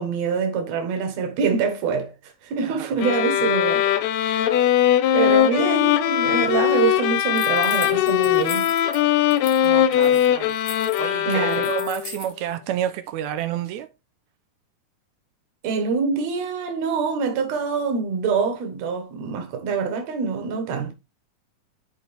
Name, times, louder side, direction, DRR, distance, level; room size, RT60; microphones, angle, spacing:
voice 1, 0.0-4.6 5.1-8.7 11.3-11.7 15.6-20.9, right 6 dB, 60° right, 2.5 m, -25 dB
sound 1, 3.0-12.2, left 11 dB, 85° left, 1.5 m, -20 dB
sound 2, 7.4-9.0 9.3-9.7 9.9-12.3, left 6 dB, 65° left, 1.1 m, -38 dB
voice 2, 9.6-10.6 11.0-13.9, right 11 dB, 75° right, 1.8 m, -30 dB
10.5 x 4.5 x 3.4 m
omnidirectional pair, 3.8 m